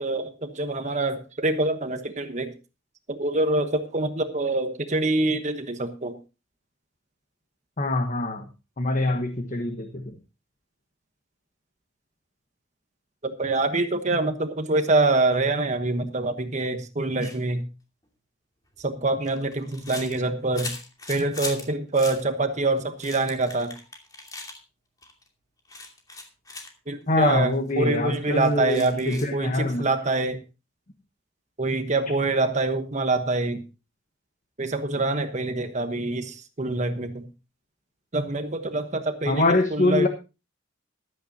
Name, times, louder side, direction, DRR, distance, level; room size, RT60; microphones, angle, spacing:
voice 1, 0.0-2.5 3.1-6.2 13.2-17.7 18.8-20.7 21.1-23.7 26.9-30.4 31.6-33.6 34.6-37.2 38.1-40.1, right 2 dB, 35° right, 8 dB, 1.2 m, -25 dB
voice 2, 7.8-8.5 8.8-10.1 27.1-29.8 39.3-40.1, left 2 dB, 40° left, 6 dB, 1.2 m, -24 dB
sound 1, 17.2-17.4 18.7-21.7 21.9-22.2 22.8-24.6 25.0-25.3 25.7-26.7 27.2-27.3 27.5-27.7 28.3-29.3, left 3 dB, 20° left, 2.7 m, -39 dB
15.0 x 13.0 x 2.8 m, 0.30 s
head